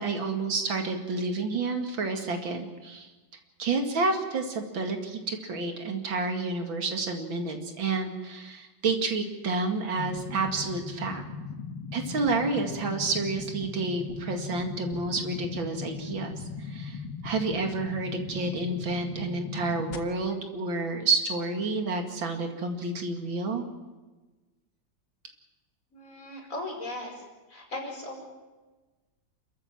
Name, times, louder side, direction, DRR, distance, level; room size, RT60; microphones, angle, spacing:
voice 1, 0.0-3.1 3.6-11.2 11.9-23.7, right 3 dB, 80° right, 4 dB, 3.0 m, -30 dB
sound 1, 10.0-20.0, left 4 dB, 65° left, 2.4 m, -38 dB
voice 2, 25.9-27.2 27.5-28.3, left 2 dB, 40° left, 0 dB, 5.5 m, -37 dB
28.5 x 14.0 x 7.6 m, 1.2 s
omnidirectional pair, 2.1 m